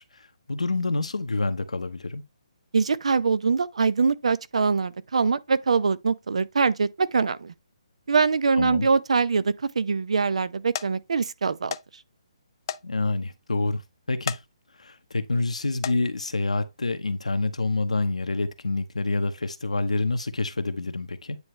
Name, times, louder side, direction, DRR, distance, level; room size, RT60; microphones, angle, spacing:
voice 1, 0.0-2.2 8.6-8.9 12.8-13.8 14.1-14.4 14.8-21.4, left 3 dB, 90° left, 0.9 m, -27 dB
voice 2, 2.7-7.5 8.1-11.8, right 5 dB, 70° right, 0.6 m, -23 dB
sound 1, 9.4-9.7 10.3-10.5 10.7-10.9 11.7-11.9 12.2-12.3 12.7-12.8 13.2-13.3 14.1-14.4 14.9-15.2 15.7-16.0 16.9-17.1 17.6-17.7, left 9 dB, 40° left, 0.4 m, -33 dB
9.6 x 3.2 x 3.2 m
hypercardioid pair, 150°, 3 cm